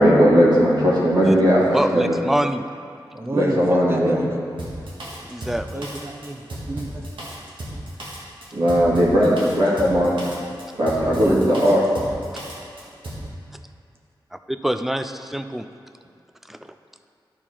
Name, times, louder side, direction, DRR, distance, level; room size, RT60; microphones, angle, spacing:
voice 1, 0.0-2.2 3.3-4.2 8.5-10.2 10.8-11.8, equal, 60° right, -6 dB, 2.1 m, -18 dB
voice 2, 1.7-2.6 5.2-5.8 14.3-15.7 16.5-16.6, right 1 dB, 5° right, 9 dB, 0.3 m, -25 dB
voice 3, 3.1-4.5 5.7-7.0 10.7-11.6, right 1 dB, 30° right, 0 dB, 0.8 m, -30 dB
Drum kit, 4.6-13.3, right 1 dB, 80° right, 1.7 m, -34 dB
12.0 x 4.5 x 4.4 m, 2.4 s
wide cardioid pair, 105°, 8 cm